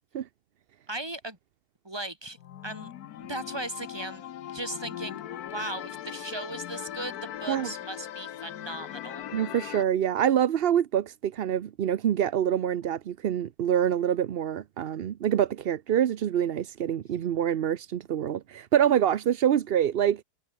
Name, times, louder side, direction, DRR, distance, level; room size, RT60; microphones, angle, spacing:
voice 1, 0.9-1.4 1.8-2.4 2.6-2.9 3.2-4.2 4.5-5.2 5.5-9.2, right 2 dB, 15° right, 2.7 m, -37 dB
sound 1, 2.4-9.8, left 11 dB, 65° left, 1.3 m, -39 dB
voice 2, 9.3-20.2, right 10 dB, 75° right, 0.5 m, -26 dB
omnidirectional pair, 1.8 m